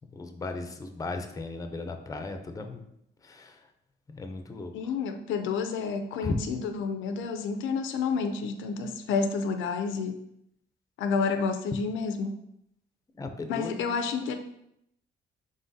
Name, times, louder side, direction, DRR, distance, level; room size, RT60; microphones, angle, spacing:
voice 1, 0.1-2.8 3.2-3.7 4.1-4.9 6.2-6.4 13.2-13.9, left 3 dB, 15° left, 6 dB, 0.4 m, -36 dB
voice 2, 4.7-10.2 11.0-12.4 13.5-14.4, left 5 dB, 85° left, 8 dB, 0.4 m, -30 dB
3.7 x 3.7 x 2.6 m, 0.78 s
cardioid pair, 90°, 20 cm